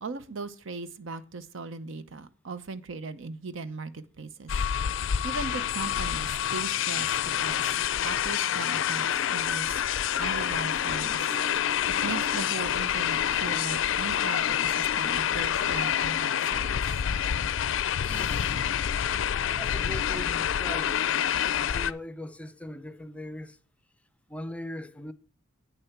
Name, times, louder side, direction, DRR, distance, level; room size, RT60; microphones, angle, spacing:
voice 1, 0.0-4.5 5.2-7.1 7.4-7.6 8.0-9.8 10.2-11.3 12.0-16.8, right 4 dB, 65° right, 0.7 m, -38 dB
sound 1, 4.5-21.9, left 9 dB, 65° left, 0.4 m, -27 dB
short guitar transitions descending, 10.3-16.8, right 3 dB, 40° right, 1.8 m, -49 dB
voice 2, 18.0-18.6 19.6-21.0 21.7-23.6 24.3-25.1, left 1 dB, 5° left, 0.5 m, -40 dB
8.4 x 6.7 x 5.8 m
head